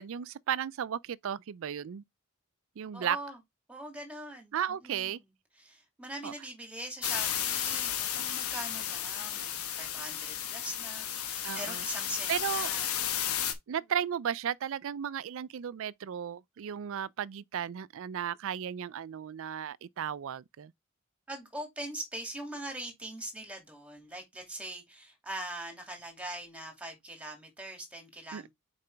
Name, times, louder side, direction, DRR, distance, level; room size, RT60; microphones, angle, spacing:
voice 1, 0.0-2.0 2.8-3.2 4.5-5.2 6.2-6.3 11.4-11.8 12.3-12.7 13.7-20.7 28.3-28.5, right 9 dB, 65° right, 0.4 m, -34 dB
voice 2, 2.9-3.4 3.7-5.3 5.5-13.6 21.3-28.5, right 1 dB, 5° right, 2.4 m, -42 dB
sound 1, 7.0-13.5, left 10 dB, 85° left, 1.1 m, -33 dB
6.7 x 4.9 x 3.4 m
head